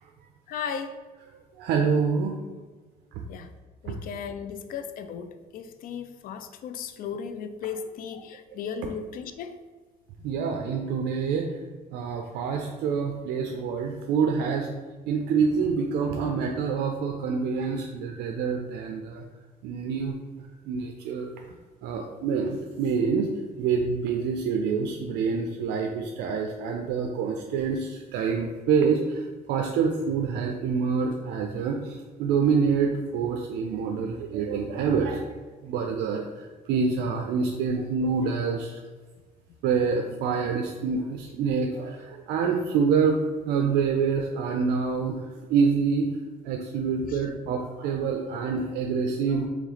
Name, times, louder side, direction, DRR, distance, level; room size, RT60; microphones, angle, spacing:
voice 1, 0.5-0.9 3.3-3.5 3.8-9.6, left 6 dB, 60° left, 9 dB, 0.4 m, -36 dB
voice 2, 1.6-2.4 8.8-8.9 10.2-11.5 11.9-14.7 15.1-19.2 19.6-20.2 20.7-21.3 21.8-23.3 23.6-35.2 35.6-38.8 39.6-46.1 46.4-49.5, right 5 dB, 85° right, 2 dB, 0.4 m, -26 dB
3.1 x 3.1 x 3.9 m, 1.3 s
cardioid pair, 110°, 17 cm